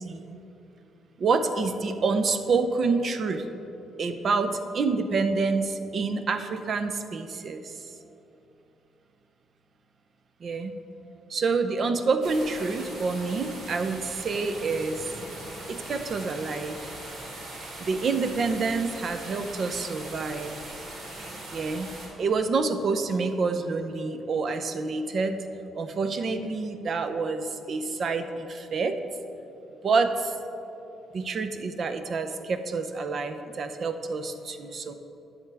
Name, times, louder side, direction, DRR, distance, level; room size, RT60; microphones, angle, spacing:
voice 1, 0.0-0.4 1.2-3.4 4.0-7.9 10.4-10.7 11.3-15.1 15.7-17.0 17.8-20.6 21.5-21.9 22.2-25.4 25.7-29.0 29.8-30.3 31.1-34.9, right 4 dB, 50° right, 8 dB, 0.6 m, -27 dB
sound 1, 12.2-22.1, right 1 dB, 75° right, 2.1 m, -40 dB
11.5 x 7.2 x 3.4 m, 2.9 s
cardioid pair, 90°, 0 cm